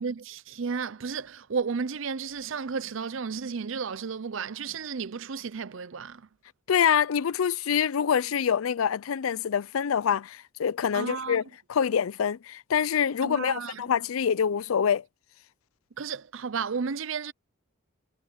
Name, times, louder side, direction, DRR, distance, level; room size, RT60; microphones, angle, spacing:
voice 1, 0.0-6.3 10.9-11.4 13.2-13.8 16.0-17.3, right 5 dB, 70° right, 0.6 m, -33 dB
voice 2, 6.7-11.4 11.7-15.0, left 7 dB, 90° left, 0.4 m, -25 dB
head